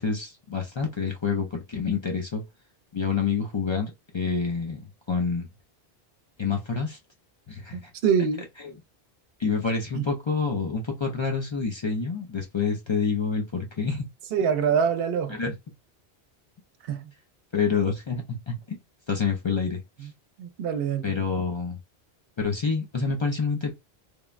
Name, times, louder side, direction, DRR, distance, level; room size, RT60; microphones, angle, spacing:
voice 1, 0.0-2.4 2.9-4.8 5.1-5.5 6.4-7.0 7.5-7.9 9.4-14.1 15.4-15.5 17.5-18.8 19.1-20.1 21.0-21.8 22.4-23.7, left 5 dB, 50° left, 0.3 m, -27 dB
voice 2, 7.7-8.4 9.9-10.1 14.3-15.4 16.8-17.1 20.0-20.1 20.4-21.1, right 7 dB, 70° right, 0.8 m, -25 dB
3.2 x 2.1 x 2.4 m
omnidirectional pair, 1.0 m